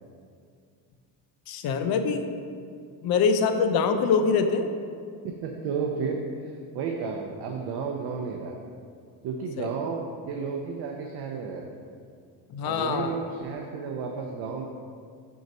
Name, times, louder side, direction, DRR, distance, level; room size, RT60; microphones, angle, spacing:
voice 1, 1.5-2.3 3.0-4.7 9.6-9.7 12.5-13.1, left 5 dB, 60° left, 7 dB, 0.6 m, -24 dB
voice 2, 5.2-8.6 9.2-11.8 12.6-14.7, right 5 dB, 65° right, 1 dB, 0.6 m, -32 dB
4.7 x 3.9 x 5.2 m, 2.2 s
cardioid pair, 120°, 42 cm